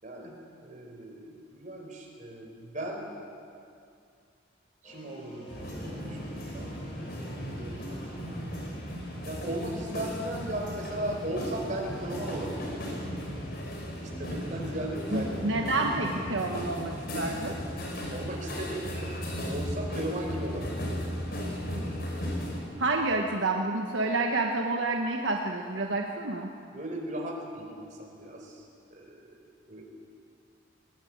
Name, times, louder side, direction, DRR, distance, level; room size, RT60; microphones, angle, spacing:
voice 1, 0.0-3.2 4.8-8.5 9.3-12.8 14.0-15.7 17.1-20.9 21.4-22.3 26.7-29.4 29.7-29.8, right 1 dB, 40° right, 0 dB, 4.5 m, -38 dB
sound 1, 4.8-15.9, right 1 dB, 30° left, 6.9 m, -51 dB
sound 2, 5.5-22.6, equal, 50° left, 5.5 m, -36 dB
voice 2, 15.1-17.5 22.8-26.5, right 2 dB, 75° right, 2 dB, 1.4 m, -29 dB
20.5 x 20.0 x 8.9 m, 2.4 s
head